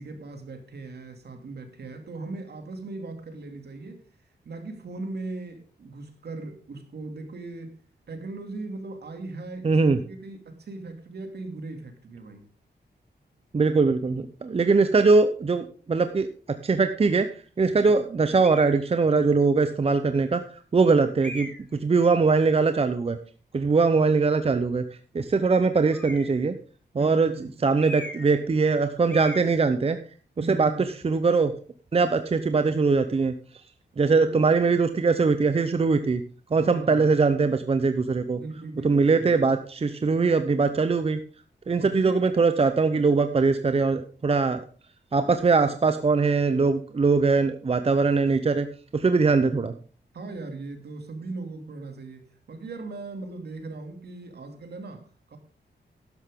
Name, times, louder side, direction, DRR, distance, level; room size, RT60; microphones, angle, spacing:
voice 1, 0.0-4.0 4.4-7.8 8.1-12.4 17.9-18.0 20.8-21.1 26.9-27.7 30.4-30.9 34.1-34.6 36.5-37.2 38.3-39.6 41.8-42.3 49.2-49.4 50.1-55.4, right 3 dB, 65° right, 2.6 m, -39 dB
voice 2, 9.6-10.0 13.5-16.3 16.6-17.3 17.6-20.4 20.7-21.5 21.8-23.2 23.5-24.8 25.1-26.6 27.0-27.3 27.6-30.0 30.5-30.7 31.0-31.5 31.9-33.3 34.0-36.2 36.5-38.4 38.8-41.2 41.7-44.6 45.1-48.7 48.9-49.7, right 4 dB, 35° right, 0.7 m, -21 dB
sound 1, 18.4-18.8 19.6-19.7 21.2-21.8 25.9-26.5 27.8-28.4 28.6-28.8 29.1-29.5, left 1 dB, 5° left, 2.9 m, -39 dB
12.5 x 11.0 x 3.7 m
wide cardioid pair, 120°, 18 cm